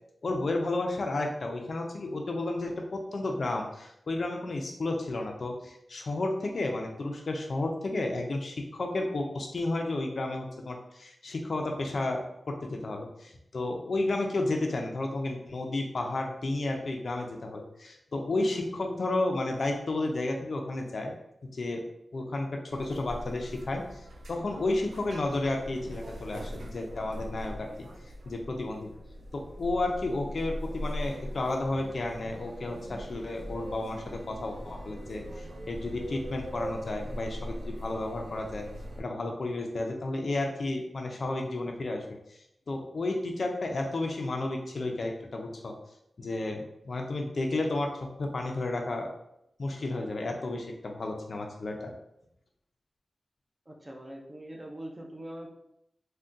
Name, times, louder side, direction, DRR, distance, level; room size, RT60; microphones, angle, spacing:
voice 1, 0.2-21.1 21.4-21.9 22.1-27.9 28.2-28.9 29.3-38.7 39.0-42.2 42.7-45.7 46.2-49.1 49.6-51.9, left 2 dB, 60° left, 2 dB, 0.4 m, -32 dB
sound 1, 22.7-39.0, equal, 75° right, 0.4 m, -41 dB
voice 2, 53.7-55.5, right 1 dB, 20° right, 0 dB, 0.5 m, -42 dB
3.6 x 2.2 x 2.6 m, 0.79 s
wide cardioid pair, 105°, 0 cm